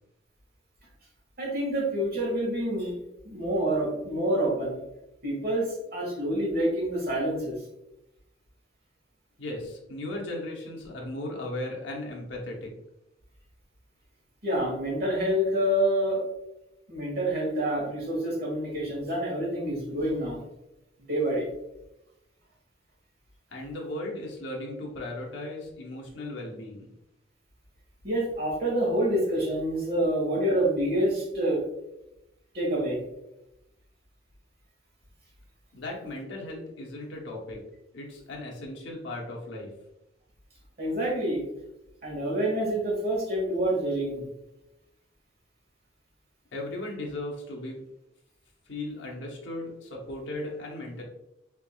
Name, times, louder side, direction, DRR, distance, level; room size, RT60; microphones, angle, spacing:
voice 1, 1.4-2.9 3.2-4.8 5.2-7.6 14.4-16.2 16.9-20.4 21.1-21.5 28.0-31.6 32.5-33.0 40.8-41.4 42.0-44.2, right 1 dB, 55° right, -3 dB, 1.4 m, -27 dB
voice 2, 9.4-12.7 23.5-26.9 35.7-37.6 37.9-39.7 46.5-47.8 48.7-51.0, left 1 dB, 75° left, -1 dB, 0.9 m, -36 dB
3.7 x 3.5 x 2.3 m, 0.89 s
head